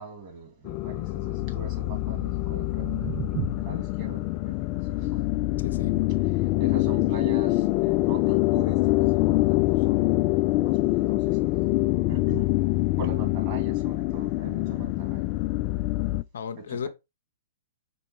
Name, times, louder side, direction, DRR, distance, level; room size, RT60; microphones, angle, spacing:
voice 1, 0.0-3.1 3.6-5.2 6.4-10.1 10.4-11.6 12.1-12.5 13.0-15.3 15.9-16.0 16.7-16.9, right 4 dB, 35° right, 2.6 m, -42 dB
sound 1, 0.6-16.2, left 18 dB, 35° left, 0.3 m, -25 dB
sound 2, 2.2-8.3, right 7 dB, 20° right, 1.3 m, -39 dB
voice 2, 3.5-3.8 5.6-6.0 16.3-16.9, left 8 dB, 65° left, 0.7 m, -34 dB
5.4 x 4.0 x 4.4 m
hypercardioid pair, 120°, 0 cm